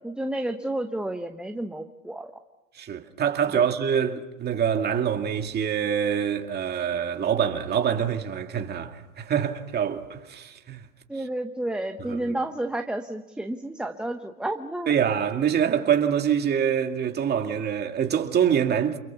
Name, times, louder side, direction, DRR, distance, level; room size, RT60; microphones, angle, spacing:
voice 1, 0.0-2.3 3.5-3.7 11.1-15.0, right 1 dB, ahead, 0.9 m, -31 dB
voice 2, 2.7-10.9 12.1-12.4 14.9-19.0, right 8 dB, 25° right, 2.4 m, -25 dB
29.0 x 22.5 x 7.1 m
hypercardioid pair, 125°, 41 cm